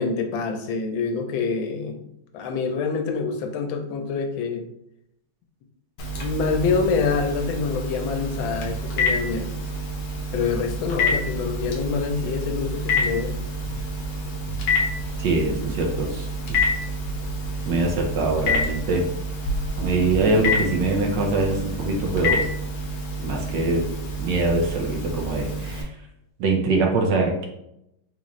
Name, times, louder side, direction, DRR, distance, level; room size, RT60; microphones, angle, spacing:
voice 1, 0.0-2.0 2.3-4.7 6.2-9.5 10.3-13.4, left 5 dB, 90° left, 5 dB, 1.4 m, -26 dB
Telephone, 6.0-25.8, left 1 dB, 65° left, 1.1 m, -28 dB
voice 2, 15.2-16.6 17.7-19.0 19.8-22.5 23.2-23.9 24.2-25.9 26.4-27.4, right 2 dB, 75° right, 0 dB, 1.3 m, -23 dB
4.0 x 2.4 x 3.0 m, 0.80 s
omnidirectional pair, 2.1 m